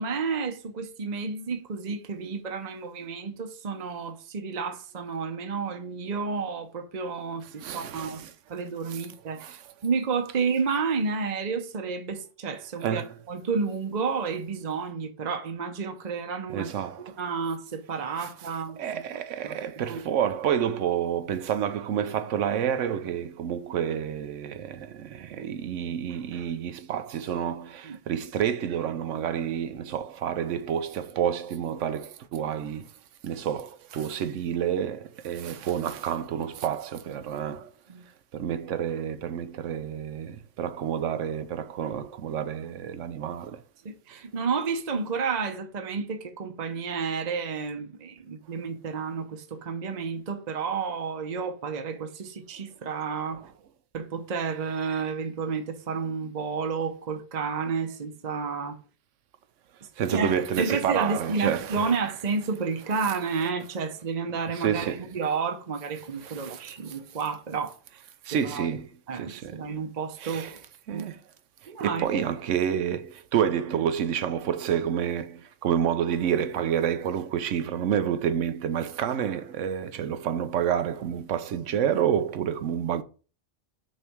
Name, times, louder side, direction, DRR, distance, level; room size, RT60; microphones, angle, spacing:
voice 1, 0.0-8.2 8.5-13.0 13.3-16.7 17.0-19.0 19.4-19.6 19.9-20.0 27.8-28.0 37.9-38.0 43.8-53.4 53.9-58.8 60.1-67.7 68.3-68.8 69.1-70.6 70.9-71.1 71.7-72.2, right 5 dB, 40° right, 0.8 m, -31 dB
voice 2, 7.6-8.3 8.9-9.0 9.4-9.6 12.8-13.1 16.5-17.2 18.2-18.3 18.8-32.9 33.2-37.7 38.3-43.6 60.0-61.9 64.5-65.0 66.2-67.0 68.2-69.6 70.2-70.6 70.9-71.2 71.6-83.0, right 9 dB, 75° right, 1.0 m, -29 dB
6.3 x 3.3 x 6.0 m
omnidirectional pair, 1.3 m